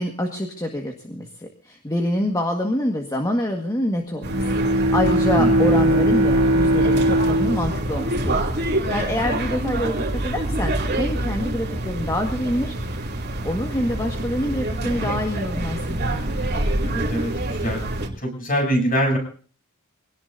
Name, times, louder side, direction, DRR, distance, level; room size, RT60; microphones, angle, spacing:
voice 1, 0.0-4.4 4.7-8.4 8.7-13.0 13.4-16.0, left 1 dB, 15° left, 1 dB, 1.7 m, -26 dB
sound 1, 4.2-18.1, right 1 dB, 50° right, 2.9 m, -26 dB
Bowed string instrument, 4.2-9.0, right 1 dB, 80° right, 2.9 m, -20 dB
voice 2, 16.8-17.3 17.6-17.8 18.2-19.2, equal, 40° left, 2 dB, 7.6 m, -23 dB
24.0 x 18.0 x 2.7 m, 0.43 s
head